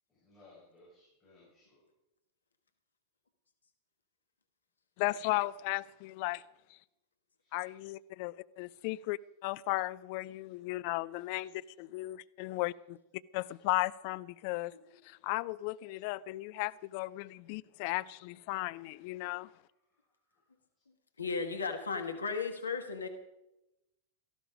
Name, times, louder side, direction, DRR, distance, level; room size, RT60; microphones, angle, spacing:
voice 1, 0.1-1.8 7.4-7.6 20.3-20.4, left 2 dB, 10° left, 7.7 m, -61 dB
voice 2, 5.0-6.4 6.7-6.8 7.5-13.0 13.3-14.7 15.0-19.5, left 19 dB, 45° left, 0.5 m, -35 dB
voice 3, 21.2-23.1, left 4 dB, 75° left, 1.5 m, -35 dB
17.5 x 14.0 x 5.2 m
figure-of-eight pair, 90°, 0 cm